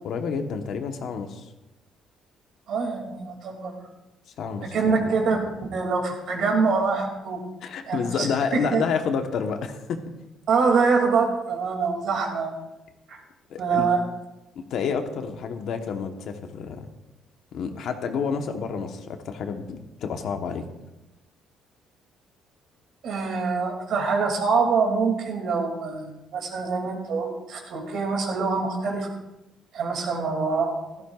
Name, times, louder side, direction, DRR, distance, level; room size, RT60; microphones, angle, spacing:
voice 1, 0.0-1.5 4.4-5.1 7.6-10.0 13.5-13.9 14.5-16.9 17.5-20.6, left 6 dB, 60° left, 6 dB, 1.0 m, -29 dB
voice 2, 2.7-3.7 4.7-5.4 5.7-7.4 7.9-8.3 8.5-8.8 10.5-12.5 13.1-13.2 13.6-14.0 23.0-29.1 29.7-30.7, right 4 dB, 60° right, 2 dB, 2.4 m, -24 dB
16.5 x 13.5 x 2.4 m, 0.98 s
cardioid pair, 160°, 0 cm